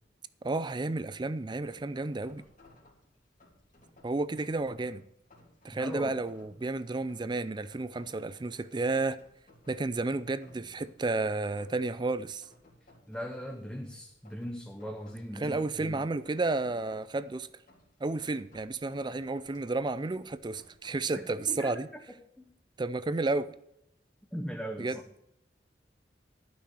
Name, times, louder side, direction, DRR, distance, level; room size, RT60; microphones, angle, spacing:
voice 1, 0.4-2.4 4.0-5.0 5.6-9.2 9.7-12.4 15.4-17.5 18.0-21.9 22.8-23.5 24.8-25.0, right 3 dB, 25° right, 0.4 m, -32 dB
Rain, 1.5-21.3, left 1 dB, 50° left, 2.9 m, -61 dB
voice 2, 5.7-6.2 13.1-16.0 21.1-21.8 22.4-22.5 24.3-25.0, equal, 5° left, 0.9 m, -39 dB
11.5 x 6.2 x 7.6 m
head